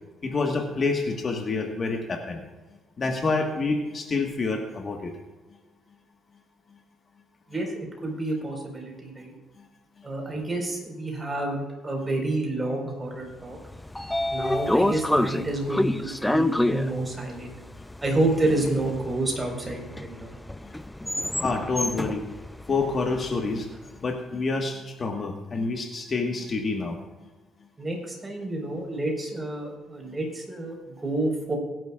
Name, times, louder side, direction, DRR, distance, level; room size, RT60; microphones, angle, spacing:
voice 1, 0.2-2.4 3.0-5.1 20.6-20.7 21.4-22.3 22.7-23.7 24.0-27.0, left 3 dB, 40° left, 2 dB, 1.6 m, -27 dB
voice 2, 7.5-9.3 10.0-13.6 14.3-17.5 18.0-20.3 27.8-31.6, right 2 dB, 20° right, 0 dB, 4.7 m, -29 dB
Train / Sliding door, 13.5-23.7, left 1 dB, 5° left, 0.5 m, -28 dB
22.5 x 11.0 x 2.5 m, 1.2 s
cardioid pair, 105°, 0 cm